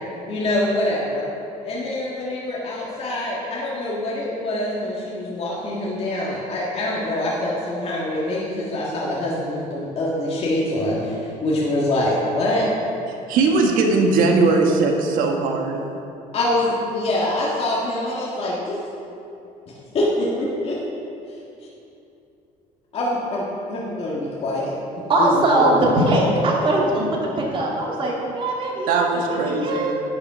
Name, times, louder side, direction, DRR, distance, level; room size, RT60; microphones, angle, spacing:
voice 1, 0.3-1.2 1.6-12.7 16.3-18.8 19.9-20.8 22.9-24.7 25.2-26.1, left 1 dB, 45° left, -5 dB, 1.9 m, -24 dB
voice 2, 13.1-15.8 28.9-30.0, right 3 dB, 80° right, 2 dB, 1.5 m, -20 dB
voice 3, 25.1-27.1 27.4-30.0, right 1 dB, 40° right, -3 dB, 2.4 m, -21 dB
10.5 x 6.6 x 6.2 m, 2.8 s
cardioid pair, 125°, 14 cm